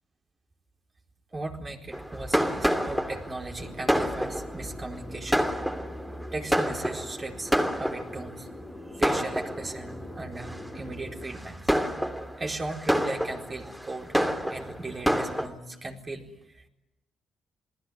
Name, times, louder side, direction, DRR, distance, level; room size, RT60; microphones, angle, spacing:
voice 1, 1.3-5.5 6.3-7.5 7.8-8.5 8.9-11.7 12.4-14.2 14.5-16.7, right 2 dB, 30° right, 2 dB, 4.3 m, -37 dB
Fireworks, 1.9-8.4 9.0-9.9 10.5-10.8 11.3-15.5, equal, ahead, 3.0 m, -28 dB
sound 1, 3.6-11.3, left 1 dB, 30° left, 4.9 m, -44 dB
30.0 x 19.5 x 9.6 m, 0.98 s
figure-of-eight pair, 40°, 0 cm